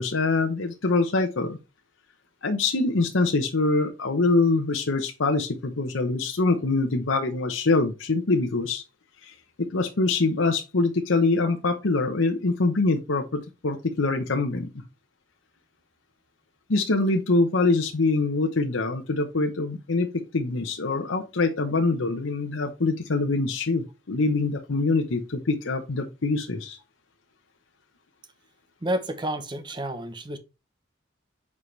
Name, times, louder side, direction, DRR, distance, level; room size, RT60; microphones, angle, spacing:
voice 1, 0.0-1.6 2.4-8.8 9.2-14.7 16.7-26.8, left 3 dB, 75° left, 0.9 m, -24 dB
voice 2, 28.8-30.4, right 1 dB, 20° right, 0.9 m, -30 dB
7.5 x 4.7 x 3.3 m
head